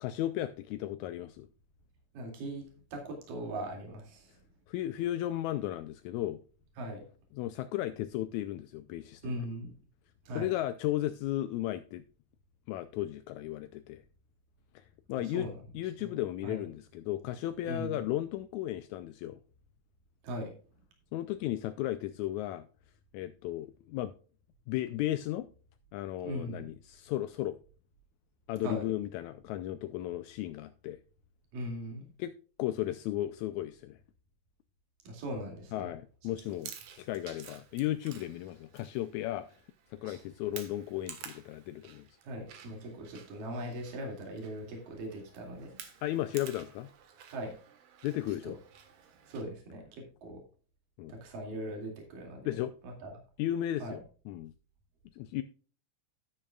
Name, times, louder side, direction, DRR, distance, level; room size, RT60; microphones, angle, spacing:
voice 1, 0.0-1.5 4.7-6.4 7.3-9.3 10.4-12.0 12.7-14.0 14.8-15.5 15.7-19.4 21.1-22.7 23.1-24.1 24.7-25.5 25.9-27.6 28.5-31.0 32.2-32.3 32.6-34.0 35.7-39.5 39.9-42.1 46.0-46.9 48.0-48.6 51.0-51.1 52.5-52.7 53.4-54.0 54.3-54.5 55.2-55.4, left 14 dB, 80° left, 1.7 m, -35 dB
voice 2, 2.1-4.4 6.8-7.1 9.2-9.7 10.3-10.5 15.2-15.5 16.0-16.7 17.7-18.0 20.2-20.5 26.2-26.7 28.6-28.8 31.5-32.1 35.0-36.0 36.5-36.6 42.2-45.8 47.3-47.5 48.4-48.6 49.3-50.4 51.1-52.5 52.8-53.2 53.8-54.0, right 1 dB, 85° right, 4.1 m, -40 dB
Chewing mastication, 36.3-49.4, right 8 dB, 65° right, 2.7 m, -52 dB
12.0 x 10.0 x 2.3 m
omnidirectional pair, 3.8 m